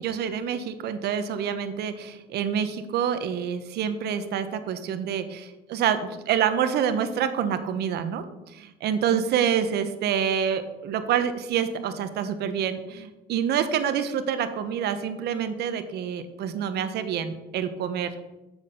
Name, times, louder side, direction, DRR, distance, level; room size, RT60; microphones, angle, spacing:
voice 1, 0.0-18.1, right 8 dB, 65° right, 10 dB, 1.1 m, -27 dB
7.5 x 6.5 x 6.5 m, 1.0 s
supercardioid pair, 85°, 18 cm